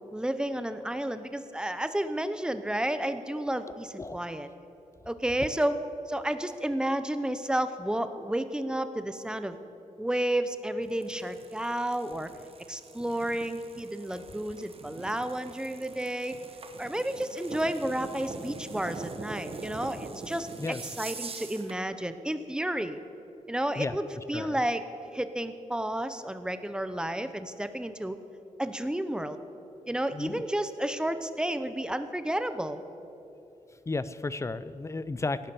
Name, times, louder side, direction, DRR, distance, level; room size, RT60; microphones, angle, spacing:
voice 1, 0.1-4.5 5.1-5.8 6.1-9.6 10.0-12.3 12.7-16.4 16.8-23.0 23.5-24.8 25.1-28.2 28.6-29.4 29.9-32.8, right 1 dB, 5° right, 11 dB, 0.8 m, -31 dB
sound 1, 10.8-21.8, right 4 dB, 45° right, 1.2 m, -43 dB
voice 2, 30.1-30.5 33.9-35.5, left 3 dB, 20° left, 15 dB, 0.5 m, -33 dB
17.0 x 11.5 x 7.0 m, 2.9 s
wide cardioid pair, 135°, 14 cm